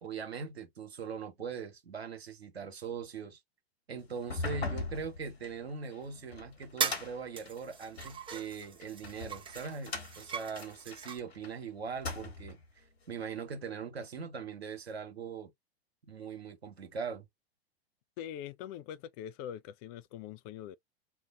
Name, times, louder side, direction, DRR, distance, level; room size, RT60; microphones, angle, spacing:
voice 1, 0.0-3.4 3.9-12.6 13.1-15.5 16.1-17.3, right 5 dB, 85° right, 1.1 m, -41 dB
sound 1, 4.2-8.2 8.8-11.5 11.9-12.6, left 3 dB, 85° left, 1.2 m, -41 dB
sound 2, 6.2-6.3 6.8-7.1 7.4-11.2, right 6 dB, 15° right, 0.8 m, -39 dB
voice 2, 18.2-20.8, left 10 dB, 40° left, 0.4 m, -43 dB
2.7 x 2.4 x 3.8 m
hypercardioid pair, 95°, 31 cm